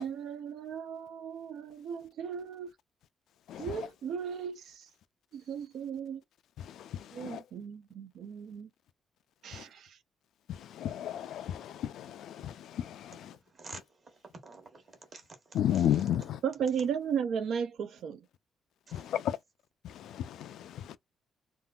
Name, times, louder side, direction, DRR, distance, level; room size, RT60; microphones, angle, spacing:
voice 1, 0.0-2.7 3.6-4.9 5.3-6.2 7.1-8.7 9.4-10.0 16.4-18.3, right 7 dB, 65° right, 0.4 m, -36 dB
voice 2, 3.5-3.9 6.6-7.5 9.5-9.7 10.5-13.4 15.5-16.4 18.9-19.4 19.8-21.0, left 10 dB, 70° left, 0.3 m, -34 dB
voice 3, 13.3-16.0 16.5-16.6 18.9-19.1, right 3 dB, 35° right, 1.1 m, -50 dB
3.7 x 2.4 x 2.3 m
cardioid pair, 170°, 0 cm